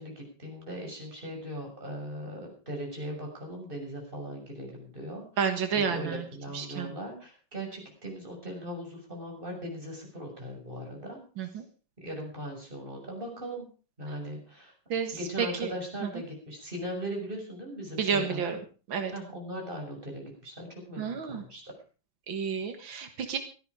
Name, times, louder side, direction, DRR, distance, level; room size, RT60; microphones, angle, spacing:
voice 1, 0.0-5.2 5.7-11.2 12.0-13.7 14.0-14.7 15.1-18.4 19.1-21.6, equal, 25° right, 0 dB, 6.8 m, -39 dB
voice 2, 5.4-6.2 6.5-6.9 11.4-11.6 14.9-15.7 16.0-16.2 18.0-18.6 18.9-19.1 21.0-21.4 22.3-23.4, right 6 dB, 90° right, 6 dB, 2.4 m, -30 dB
17.0 x 13.0 x 4.9 m, 0.37 s
omnidirectional pair, 2.0 m